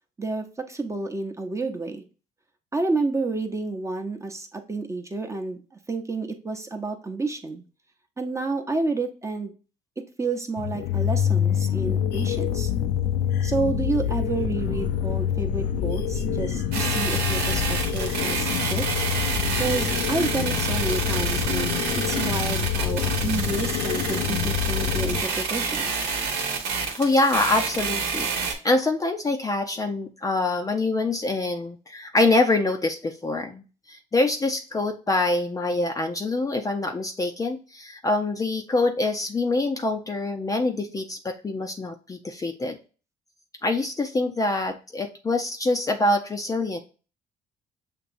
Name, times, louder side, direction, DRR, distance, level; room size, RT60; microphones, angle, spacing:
voice 1, 0.2-2.0 2.7-5.6 5.9-7.6 8.2-9.5 10.0-12.7 13.4-18.9 19.6-21.8 22.1-25.8, right 3 dB, 15° right, 5 dB, 0.8 m, -30 dB
sound 1, 10.6-25.2, left 9 dB, 75° left, 0.5 m, -26 dB
sound 2, 16.7-28.5, right 5 dB, 90° right, 1.3 m, -28 dB
voice 2, 26.9-42.8 43.6-46.8, left 2 dB, 20° left, 4 dB, 0.5 m, -25 dB
6.7 x 2.9 x 2.6 m, 0.35 s
cardioid pair, 110°, 17 cm